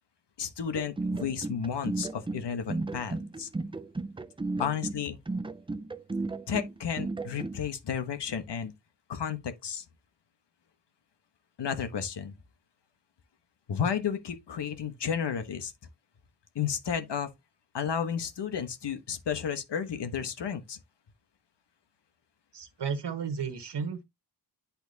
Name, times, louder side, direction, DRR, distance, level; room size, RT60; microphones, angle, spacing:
voice 1, 0.4-3.5 4.6-5.2 6.5-8.7 9.1-9.8 11.6-12.3 13.7-15.7 16.5-17.3 17.7-20.8, left 7 dB, 85° left, 1.2 m, -32 dB
sound 1, 0.7-7.6, right 3 dB, 15° right, 0.4 m, -34 dB
voice 2, 22.5-24.0, right 6 dB, 85° right, 1.5 m, -33 dB
10.5 x 4.4 x 2.8 m
wide cardioid pair, 175°, 41 cm